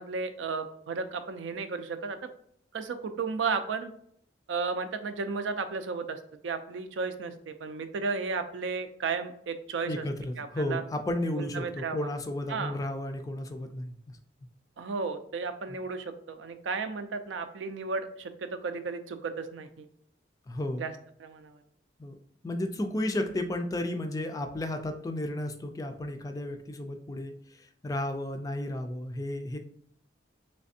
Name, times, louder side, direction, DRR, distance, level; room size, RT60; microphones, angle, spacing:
voice 1, 0.0-2.2 2.7-3.9 4.5-10.0 10.4-10.8 11.4-12.1 12.5-12.8 14.8-19.9 20.8-20.9 21.2-21.6, right 4 dB, 90° right, 9 dB, 0.4 m, -34 dB
voice 2, 9.9-14.2 15.7-15.8 20.5-20.9 22.0-22.1 22.4-29.6, left 1 dB, 20° left, 6 dB, 0.3 m, -33 dB
3.3 x 3.1 x 2.7 m, 0.68 s
head